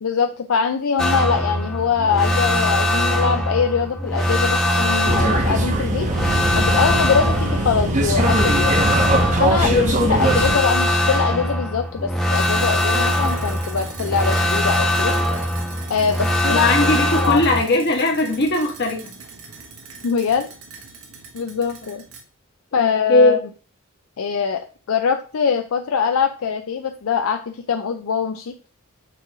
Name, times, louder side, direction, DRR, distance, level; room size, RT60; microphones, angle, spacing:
voice 1, 0.0-6.1 6.5-8.8 9.4-9.7 10.1-15.1 15.9-16.9 17.2-17.4 20.0-20.5 21.3-22.0 22.7-23.4 24.2-28.5, left 6 dB, 70° left, 7 dB, 0.5 m, -22 dB
sound 1, 1.0-17.6, left 1 dB, ahead, 0.8 m, -21 dB
sound 2, 5.1-10.6, right 1 dB, 35° right, 0.8 m, -21 dB
voice 2, 9.6-10.2 16.5-19.1 22.7-23.4, left 2 dB, 50° left, 1 dB, 1.3 m, -19 dB
sound 3, 12.3-22.2, right 4 dB, 80° right, 1.3 m, -39 dB
6.9 x 3.1 x 4.7 m, 0.38 s
head